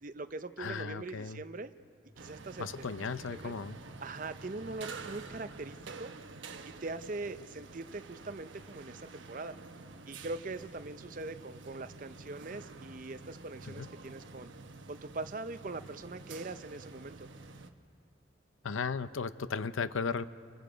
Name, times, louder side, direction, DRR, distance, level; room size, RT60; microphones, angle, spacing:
voice 1, 0.0-1.7 2.2-2.8 3.3-3.5 4.0-6.1 6.6-9.5 10.1-14.5 14.9-17.3, right 3 dB, 40° right, 11 dB, 0.6 m, -42 dB
voice 2, 0.6-1.4 2.6-3.8 13.7-13.9 18.6-20.3, left 5 dB, 90° left, 14 dB, 0.6 m, -36 dB
sound 1, 2.2-17.7, right 3 dB, 75° right, 1.0 m, -49 dB
29.0 x 22.0 x 5.1 m, 2.8 s
head